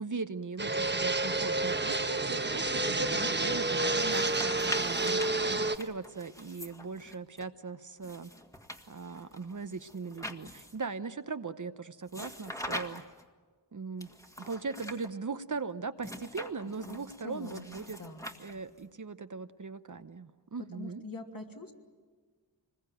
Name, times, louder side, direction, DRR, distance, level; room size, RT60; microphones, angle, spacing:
voice 1, 0.0-8.3 8.9-13.0 13.7-14.1 14.4-18.0 18.4-21.0, right 4 dB, 45° right, 10 dB, 0.9 m, -39 dB
Fixed-wing aircraft airplane, 0.6-5.8, right 2 dB, 25° right, 1.2 m, -29 dB
voice 2, 2.9-3.3 16.8-17.0 17.2-17.6 18.0-18.3 20.7-21.7, left 3 dB, 50° left, 2 dB, 3.0 m, -44 dB
sound 1, 4.0-7.4 8.0-10.9 12.1-13.2 14.0-15.1 16.0-18.8, equal, 5° left, 1.9 m, -44 dB
25.0 x 21.5 x 9.2 m, 1.5 s
wide cardioid pair, 60°, 44 cm